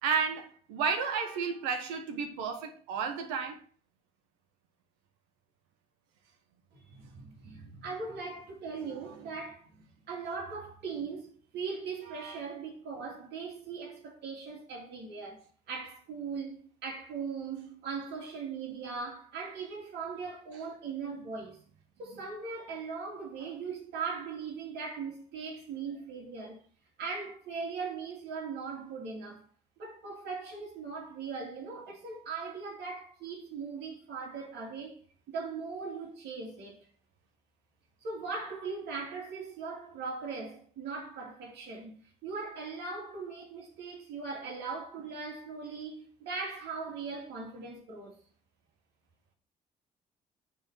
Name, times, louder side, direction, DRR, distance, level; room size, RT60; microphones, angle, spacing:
voice 1, 0.0-3.6 12.2-12.4, right 6 dB, 90° right, 1.2 m, -32 dB
voice 2, 6.7-21.6 22.0-26.6 27.0-29.5 29.8-36.9 38.0-48.2, right 5 dB, 70° right, 2.6 m, -39 dB
8.9 x 3.9 x 5.5 m
supercardioid pair, 60°, 18 cm